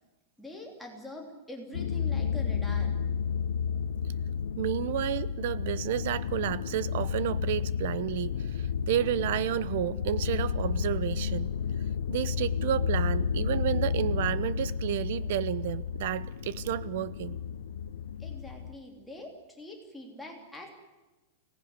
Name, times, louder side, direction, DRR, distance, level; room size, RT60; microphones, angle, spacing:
voice 1, 0.4-3.0 18.2-20.7, left 1 dB, ahead, -1 dB, 3.2 m, -44 dB
sound 1, 1.7-18.7, left 7 dB, 85° left, 1.1 m, -31 dB
voice 2, 4.6-11.5 12.1-17.4, right 12 dB, 50° right, 17 dB, 0.9 m, -31 dB
24.5 x 18.5 x 9.7 m, 1.1 s
supercardioid pair, 180°, 0 cm